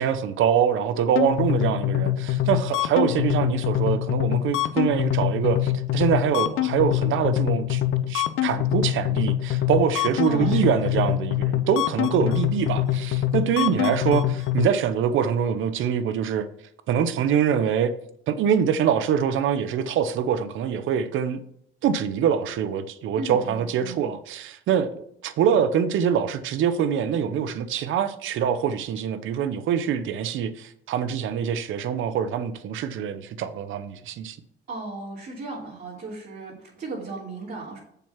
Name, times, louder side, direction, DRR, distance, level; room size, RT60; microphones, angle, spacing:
voice 1, 0.0-7.8 8.1-16.5 16.9-17.9 18.3-21.4 21.8-34.4, right 8 dB, 80° right, 0.8 m, -24 dB
sound 1, 1.1-14.7, left 13 dB, 90° left, 0.6 m, -24 dB
voice 2, 10.2-11.1 23.2-24.0 34.7-37.8, right 2 dB, 50° right, 3.2 m, -36 dB
7.1 x 5.9 x 5.8 m
cardioid pair, 90°, 20 cm